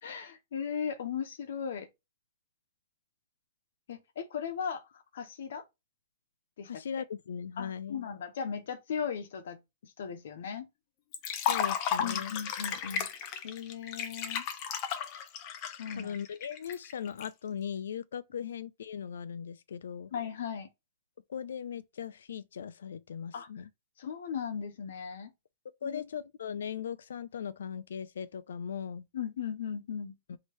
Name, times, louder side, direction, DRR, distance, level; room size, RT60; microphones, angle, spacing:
voice 1, 0.0-1.9 3.9-5.6 6.6-6.7 7.6-10.6 12.0-13.1 13.4-14.5 15.8-16.1 20.1-20.7 23.3-23.5 24.0-25.3 25.8-26.1 29.1-30.2, left 7 dB, 70° left, 0.8 m, -37 dB
voice 2, 6.7-8.0 11.5-12.3 16.0-20.1 21.3-23.7 25.8-29.0 30.3-30.4, left 7 dB, 90° left, 0.5 m, -39 dB
Liquid, 11.1-17.3, left 8 dB, 30° left, 0.7 m, -34 dB
4.5 x 2.8 x 3.2 m
hypercardioid pair, 165°, 0 cm